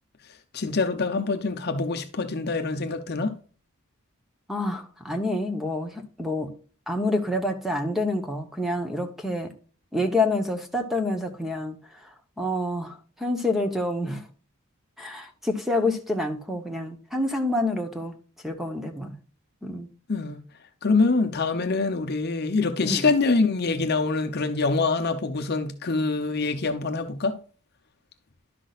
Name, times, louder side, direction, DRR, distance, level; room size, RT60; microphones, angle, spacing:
voice 1, 0.5-3.3 20.1-20.4 20.8-27.3, left 3 dB, 45° left, 0.8 m, -25 dB
voice 2, 4.5-6.5 6.9-9.5 9.9-14.2 15.0-18.1 18.4-19.2 19.6-19.9 22.8-23.1, left 1 dB, ahead, 1.0 m, -28 dB
11.5 x 6.1 x 2.5 m
head